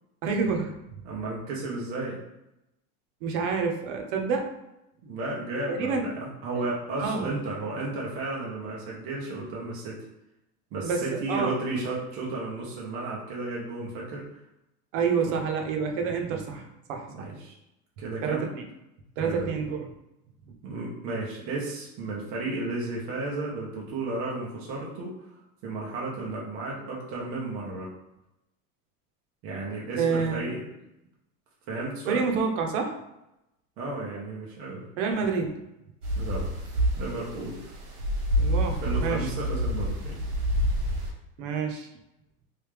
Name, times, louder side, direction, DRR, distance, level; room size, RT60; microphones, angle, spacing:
voice 1, 0.2-0.7 3.2-4.5 5.7-6.0 7.0-7.3 10.8-11.6 14.9-17.3 18.2-18.6 19.2-19.9 30.0-30.5 32.1-33.0 35.0-35.6 38.4-39.3 41.4-41.9, right 5 dB, 55° right, 3 dB, 0.8 m, -28 dB
voice 2, 1.0-2.2 5.0-10.0 10.7-14.3 15.3-15.4 17.1-17.5 18.0-18.5 19.2-19.5 20.6-25.1 25.6-27.9 29.4-30.7 31.7-32.3 33.8-34.8 36.2-36.5 37.0-37.7 38.7-40.2, right 2 dB, 20° right, -4 dB, 0.3 m, -33 dB
sound 1, 36.0-41.1, equal, 80° right, 1.3 m, -28 dB
3.3 x 2.7 x 3.3 m, 0.89 s
supercardioid pair, 140°, 46 cm